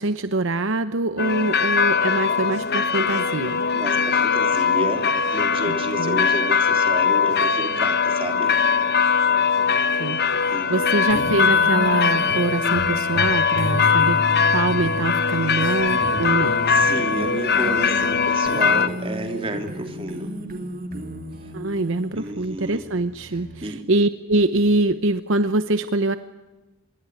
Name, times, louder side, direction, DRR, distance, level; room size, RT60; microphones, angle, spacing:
voice 1, 0.0-3.6 5.7-6.3 10.0-14.2 14.5-16.5 21.5-26.2, right 2 dB, 60° right, 11 dB, 0.9 m, -24 dB
sound 1, 1.2-18.9, left 5 dB, 50° left, 1.1 m, -21 dB
voice 2, 3.7-8.5 10.5-11.0 16.7-20.3 22.1-22.8 23.3-23.8, right 1 dB, 25° right, 5 dB, 3.3 m, -31 dB
sound 2, 11.0-23.7, equal, 40° right, 2.8 m, -32 dB
27.0 x 22.5 x 9.5 m, 1.1 s
head